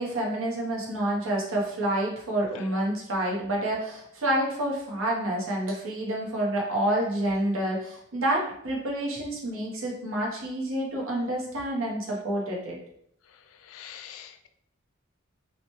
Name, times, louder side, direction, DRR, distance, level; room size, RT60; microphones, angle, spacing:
voice 1, 0.0-12.8, right 1 dB, 80° right, -2 dB, 0.8 m, -28 dB
voice 2, 13.7-14.5, left 9 dB, 85° left, 8 dB, 0.3 m, -44 dB
2.9 x 2.1 x 3.0 m, 0.71 s
head